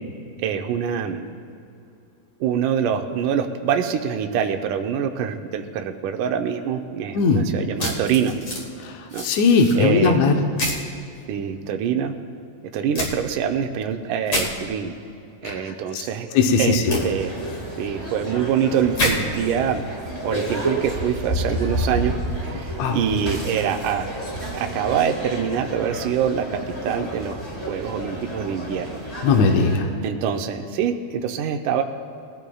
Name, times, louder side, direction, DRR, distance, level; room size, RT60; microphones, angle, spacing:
voice 1, 0.4-1.3 2.4-8.3 9.1-9.3 9.8-10.2 11.3-12.1 12.7-14.9 15.4-16.3 16.6-16.8 17.0-17.3 17.8-19.8 20.2-22.2 22.5-24.1 24.5-27.4 27.7-28.9 30.0-31.8, right 8 dB, 85° right, 4 dB, 1.8 m, -25 dB
sound 1, 7.8-8.6 9.1-9.8 10.6-10.8 12.9-13.1 14.3-14.5 16.9-17.0 18.9-19.1, left 1 dB, 45° left, 2.4 m, -25 dB
voice 2, 9.2-10.4 15.4-15.6 15.9-16.0 16.3-16.8 22.8-23.0 29.2-29.9, left 4 dB, 80° left, 3 dB, 1.6 m, -18 dB
sound 2, 16.9-29.8, right 1 dB, 15° left, 3.6 m, -30 dB
21.0 x 16.0 x 2.3 m, 2.6 s
omnidirectional pair, 4.5 m